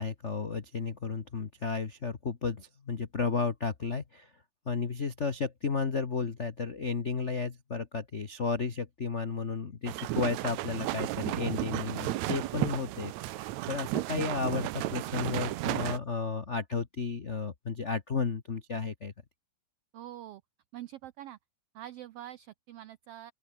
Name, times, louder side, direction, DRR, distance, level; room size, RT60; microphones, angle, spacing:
voice 1, 0.0-4.3 4.7-19.1, left 5 dB, 65° left, 0.7 m, -33 dB
sound 1, 9.9-16.0, right 16 dB, 75° right, 1.9 m, -33 dB
voice 2, 19.9-20.4 20.7-21.4 21.7-23.3, right 13 dB, 90° right, 1.3 m, -45 dB
open air
omnidirectional pair, 3.5 m